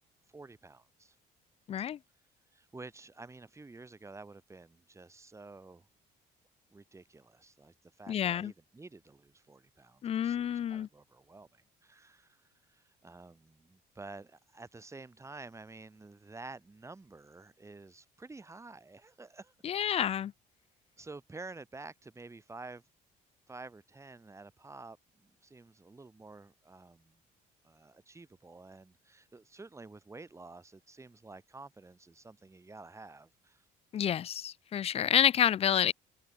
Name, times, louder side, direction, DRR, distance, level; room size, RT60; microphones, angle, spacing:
voice 1, 0.3-1.2 2.5-5.9 6.7-12.4 12.7-20.1 21.0-22.8 23.5-27.2 27.6-33.6, right 3 dB, 15° right, 3.9 m, -50 dB
voice 2, 1.7-2.0 8.1-8.5 10.0-10.9 19.6-20.3 33.9-35.9, left 9 dB, 35° left, 0.4 m, -29 dB
cardioid pair, 110°, 17 cm